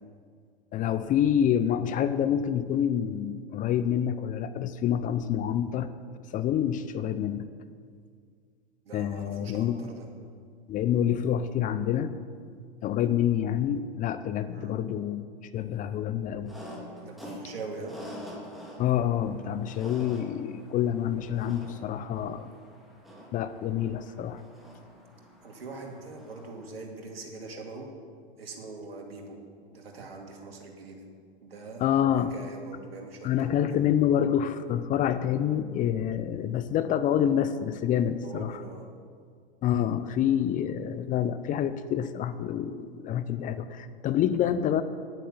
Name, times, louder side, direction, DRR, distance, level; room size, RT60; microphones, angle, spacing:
voice 1, 0.7-5.9 6.3-7.5 8.9-9.7 10.7-12.1 12.8-15.2 15.5-16.5 18.8-22.5 23.3-24.4 31.8-32.3 33.2-38.5 39.6-44.8, left 10 dB, 25° left, 12 dB, 0.6 m, -27 dB
voice 2, 8.8-10.1 14.5-14.7 17.0-18.0 25.4-27.9 28.4-29.4 29.7-31.0 31.4-31.8 32.1-33.9 38.2-38.9, right 3 dB, 80° right, 1 dB, 2.4 m, -42 dB
sound 1, 16.4-26.8, equal, ahead, 2.6 m, -46 dB
10.0 x 8.8 x 7.2 m, 2.1 s
hypercardioid pair, 105°, 29 cm